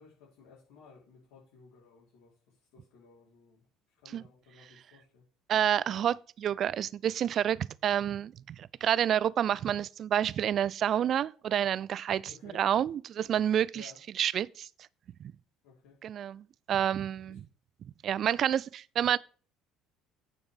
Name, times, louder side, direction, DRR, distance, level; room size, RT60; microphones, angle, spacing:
voice 1, 0.0-3.7 4.0-5.2 12.3-12.6 13.7-14.0 15.6-16.0 17.3-17.4, left 4 dB, 60° left, 5.1 m, -56 dB
voice 2, 5.5-13.9 14.2-14.7 15.2-15.3 16.0-17.4 18.0-19.2, right 10 dB, 45° right, 0.3 m, -29 dB
9.2 x 7.0 x 5.3 m
figure-of-eight pair, 55°, 0 cm